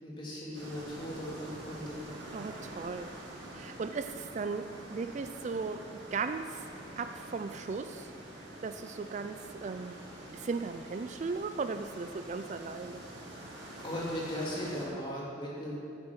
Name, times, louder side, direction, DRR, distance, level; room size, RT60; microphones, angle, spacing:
voice 1, 0.0-2.0 13.8-15.8, equal, 25° left, -6 dB, 2.9 m, -37 dB
sound 1, 0.5-14.9, right 1 dB, 75° right, 3.0 m, -46 dB
voice 2, 2.3-3.1 3.5-4.6 4.9-6.6 7.0-8.1 8.6-10.0 10.3-13.0, right 4 dB, 40° right, 9 dB, 0.3 m, -37 dB
10.5 x 7.0 x 7.1 m, 2.5 s
head